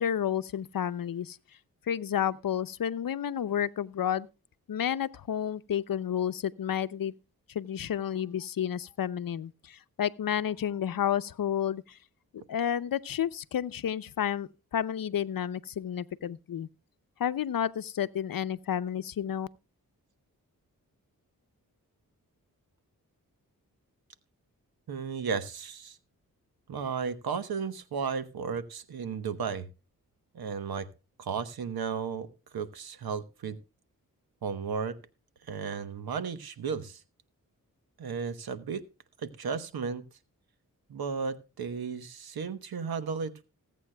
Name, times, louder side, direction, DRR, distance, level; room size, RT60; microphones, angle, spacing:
voice 1, 0.0-1.4 1.9-4.3 4.7-7.1 7.5-12.0 12.5-16.7 17.2-19.5, left 9 dB, 70° left, 0.7 m, -31 dB
voice 2, 24.9-26.0 26.7-29.7 30.3-30.9 31.2-32.3 32.5-33.6 34.4-35.0 35.4-37.0 38.0-38.8 39.2-40.0 40.9-43.4, right 6 dB, 90° right, 1.2 m, -34 dB
19.5 x 8.4 x 2.3 m
cardioid pair, 45°, 36 cm